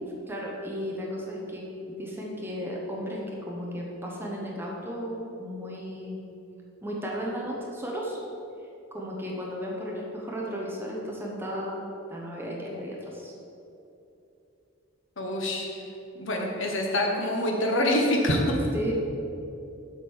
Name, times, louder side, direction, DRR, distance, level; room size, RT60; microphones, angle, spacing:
voice 1, 0.3-1.6 2.0-6.3 6.8-8.2 8.9-11.8 12.1-13.3 18.7-18.9, equal, 10° right, -3 dB, 1.0 m, -34 dB
voice 2, 15.2-15.7 16.1-18.6, left 1 dB, 60° left, 1 dB, 1.1 m, -25 dB
7.4 x 5.3 x 6.3 m, 2.9 s
head